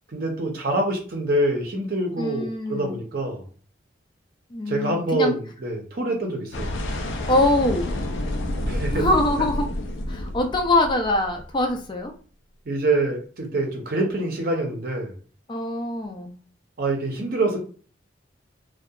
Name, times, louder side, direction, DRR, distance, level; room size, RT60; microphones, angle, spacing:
voice 1, 0.1-3.4 4.7-6.7 8.6-9.1 12.7-15.1 16.8-17.6, right 2 dB, 55° right, 2 dB, 0.6 m, -25 dB
voice 2, 2.2-3.0 4.5-5.3 7.3-7.9 8.9-9.7 10.1-12.1 15.5-16.3, left 1 dB, 25° left, 4 dB, 0.4 m, -23 dB
sound 1, 6.5-11.7, left 1 dB, 90° left, 0.5 m, -29 dB
2.7 x 2.2 x 2.2 m, 0.41 s
head